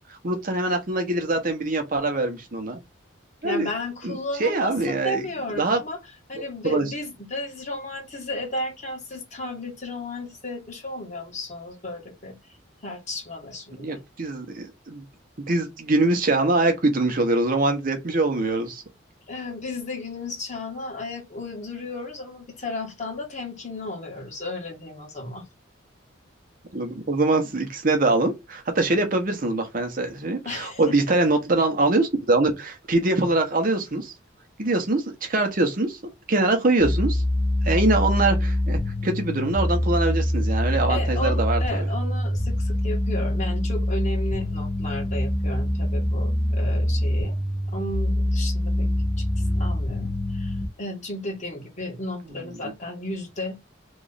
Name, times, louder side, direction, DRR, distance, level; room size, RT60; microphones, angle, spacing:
voice 1, 0.1-2.8 3.4-3.7 4.0-5.2 5.6-5.8 6.3-6.9 13.8-15.0 15.5-18.8 26.7-34.1 34.6-36.0 36.3-37.2 37.6-41.9 52.6-52.7, right 2 dB, 45° right, 0.8 m, -23 dB
voice 2, 3.4-6.0 6.3-12.4 12.8-14.0 19.3-25.4 30.4-30.9 40.9-47.3 47.7-48.9 49.2-53.6, left 2 dB, 35° left, 1.4 m, -34 dB
sound 1, 36.8-50.7, left 1 dB, 10° left, 1.2 m, -24 dB
3.1 x 2.5 x 3.9 m
head